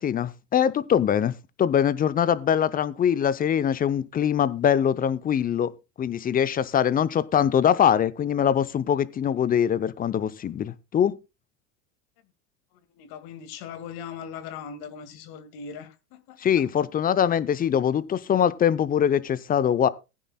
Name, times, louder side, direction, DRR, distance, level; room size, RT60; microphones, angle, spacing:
voice 1, 0.0-1.3 1.6-5.7 6.0-11.1 16.4-19.9, left 9 dB, 20° left, 0.6 m, -23 dB
voice 2, 12.7-16.4, left 7 dB, 50° left, 2.0 m, -40 dB
19.0 x 10.0 x 2.2 m
hypercardioid pair, 95°, 47 cm